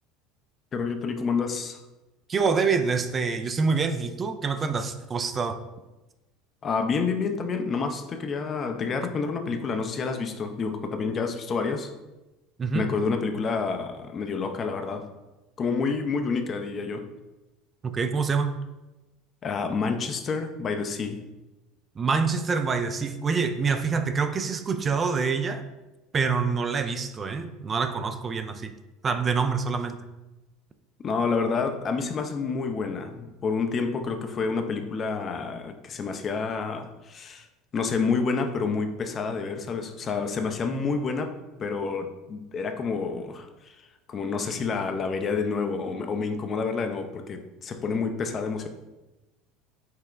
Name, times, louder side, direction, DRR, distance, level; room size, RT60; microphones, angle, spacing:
voice 1, 0.7-1.8 6.6-11.9 12.7-15.0 15.6-17.1 19.4-21.2 31.0-37.5 37.7-41.3 41.6-43.8 44.1-48.7, left 4 dB, 35° left, 6 dB, 0.5 m, -28 dB
voice 2, 2.3-5.6 12.6-12.9 17.8-18.6 22.0-25.6 26.1-28.7 29.0-30.1, right 5 dB, 30° right, 8 dB, 0.3 m, -26 dB
5.7 x 2.2 x 3.5 m, 1.1 s
figure-of-eight pair, 70°, 0 cm